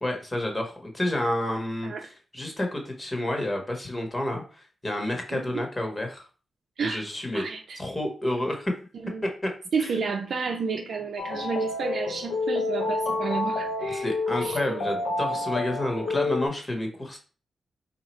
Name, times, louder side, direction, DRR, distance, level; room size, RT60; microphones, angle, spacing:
voice 1, 0.0-1.9 2.3-6.3 6.8-7.5 7.7-8.7 9.8-9.9 13.9-17.2, left 1 dB, 25° left, 2 dB, 1.4 m, -30 dB
voice 2, 5.3-5.6 6.8-7.0 7.3-7.8 9.0-9.3 9.7-14.1 14.4-14.8, right 5 dB, 70° right, 2 dB, 0.5 m, -31 dB
sound 1, 11.2-16.5, left 2 dB, 85° left, 0.7 m, -29 dB
3.8 x 2.8 x 4.4 m, 0.37 s
cardioid pair, 70°, 0 cm